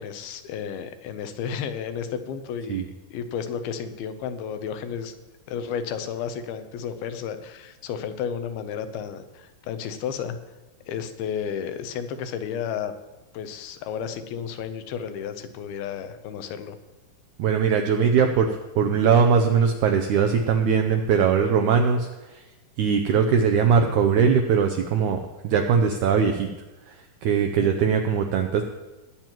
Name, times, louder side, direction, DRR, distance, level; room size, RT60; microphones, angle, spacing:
voice 1, 0.0-5.1 5.5-10.4 10.9-12.9 13.3-16.8 27.5-27.9, left 7 dB, 90° left, 9 dB, 2.7 m, -32 dB
voice 2, 17.4-18.5 18.8-22.4 22.8-26.5 26.9-27.0 27.2-28.6, right 6 dB, 85° right, 5 dB, 1.7 m, -21 dB
19.5 x 9.0 x 3.0 m, 1.1 s
omnidirectional pair, 4.2 m